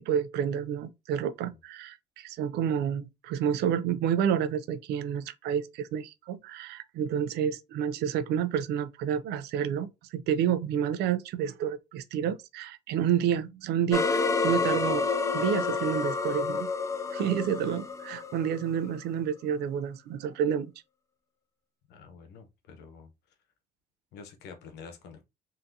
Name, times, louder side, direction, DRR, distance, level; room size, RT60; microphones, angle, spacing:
voice 1, 0.1-15.1 15.3-16.7 17.1-20.7, right 9 dB, 80° right, 0.4 m, -29 dB
sound 1, 13.9-18.9, left 4 dB, 20° left, 0.4 m, -29 dB
voice 2, 21.9-23.1 24.1-25.3, left 5 dB, 80° left, 0.9 m, -48 dB
3.5 x 2.7 x 2.6 m
cardioid pair, 110°, 17 cm